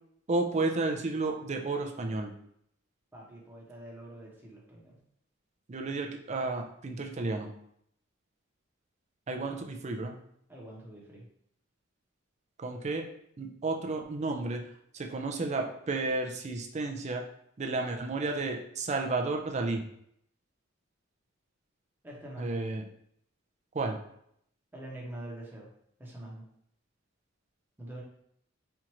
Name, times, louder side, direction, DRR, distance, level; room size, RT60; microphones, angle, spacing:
voice 1, 0.3-2.3 5.7-7.5 9.3-10.2 12.6-13.0 13.4-14.7 14.9-17.2 17.6-19.8 22.4-22.8 23.7-24.0, right 3 dB, 35° right, 3 dB, 0.4 m, -32 dB
voice 2, 3.1-5.0 10.5-11.2 22.0-22.6 24.7-25.7 26.0-26.4 27.8-28.0, right 1 dB, 10° right, -4 dB, 0.9 m, -44 dB
4.4 x 2.5 x 3.0 m, 0.71 s
head